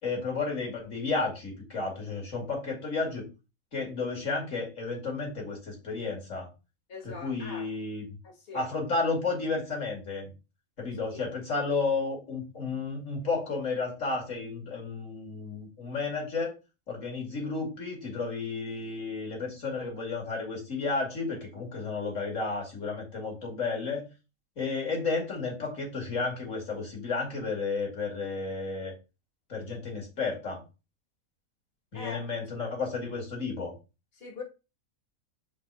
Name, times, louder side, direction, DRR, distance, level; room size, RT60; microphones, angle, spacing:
voice 1, 0.0-3.3 3.7-6.5 7.0-8.1 8.5-10.3 10.8-16.5 16.9-24.0 24.6-28.9 29.5-30.6 31.9-33.7, left 4 dB, 60° left, 3.0 m, -32 dB
voice 2, 6.9-7.7 8.2-8.7 31.9-32.3 34.1-34.4, left 4 dB, 45° left, 2.1 m, -42 dB
5.3 x 3.9 x 5.5 m
omnidirectional pair, 1.5 m